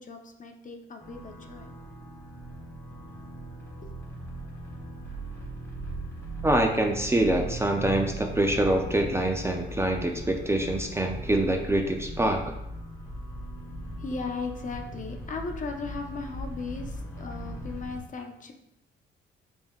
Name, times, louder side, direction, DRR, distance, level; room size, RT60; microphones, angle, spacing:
voice 1, 0.0-1.7 3.8-4.0 13.9-18.5, left 4 dB, 40° left, 3 dB, 0.6 m, -37 dB
sound 1, 1.0-18.0, right 1 dB, 10° left, 1.1 m, -39 dB
voice 2, 6.4-12.4, right 1 dB, 15° right, 3 dB, 0.4 m, -25 dB
5.4 x 3.4 x 2.3 m, 0.84 s
cardioid pair, 90°, 20 cm